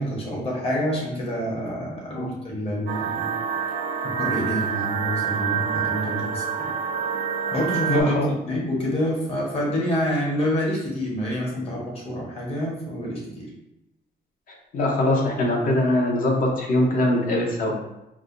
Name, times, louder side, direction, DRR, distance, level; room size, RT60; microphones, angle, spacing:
voice 1, 0.0-3.3 4.0-6.7 7.5-8.1 8.5-13.5, equal, 35° left, -3 dB, 1.1 m, -27 dB
sound 1, 2.9-8.0, right 7 dB, 70° right, 0.5 m, -27 dB
voice 2, 7.9-8.3 14.7-17.8, left 1 dB, 50° left, 0 dB, 0.8 m, -22 dB
4.7 x 2.2 x 2.6 m, 0.90 s
cardioid pair, 155°, 18 cm